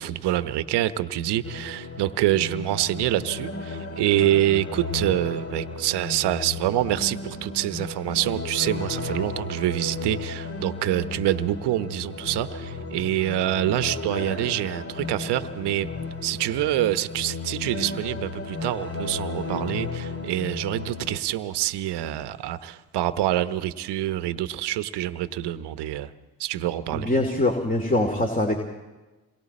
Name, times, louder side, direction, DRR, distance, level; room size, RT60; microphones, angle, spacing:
voice 1, 0.0-15.9 16.2-26.1 26.4-27.1, right 13 dB, 75° right, 13 dB, 1.0 m, -26 dB
sound 1, 1.4-21.2, left 3 dB, 35° left, 2.0 m, -34 dB
voice 2, 26.9-28.6, left 1 dB, 20° left, 3 dB, 2.6 m, -23 dB
27.5 x 22.5 x 4.3 m, 1.2 s
supercardioid pair, 55°, 41 cm